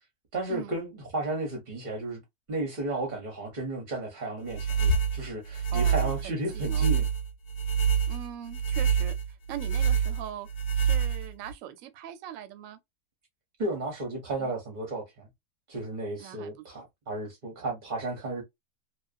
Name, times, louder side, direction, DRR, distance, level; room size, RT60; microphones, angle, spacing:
voice 1, 0.3-2.2 2.5-7.1 13.6-15.3 15.7-18.4, right 2 dB, 40° right, 0.8 m, -33 dB
sound 1, 4.5-11.5, right 6 dB, 80° left, 1.2 m, -27 dB
voice 2, 5.7-6.9 8.1-10.5 10.8-12.8 14.4-14.5 16.2-16.6, right 10 dB, 70° right, 0.9 m, -41 dB
2.4 x 2.3 x 2.4 m
omnidirectional pair, 1.6 m